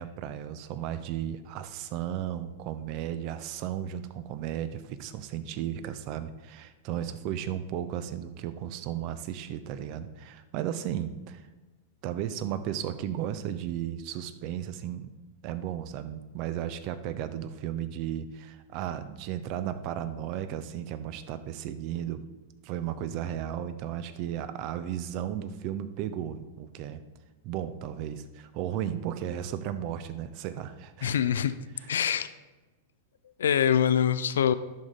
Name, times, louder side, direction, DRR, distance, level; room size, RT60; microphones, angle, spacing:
voice 1, 0.0-11.5 12.0-15.1 15.4-22.2 22.6-27.0 27.4-31.2, right 10 dB, 40° right, 11 dB, 0.6 m, -34 dB
voice 2, 31.0-31.5 31.9-32.3 33.4-34.5, left 8 dB, 65° left, 14 dB, 0.4 m, -24 dB
10.5 x 6.4 x 3.8 m, 1.2 s
figure-of-eight pair, 95°, 0 cm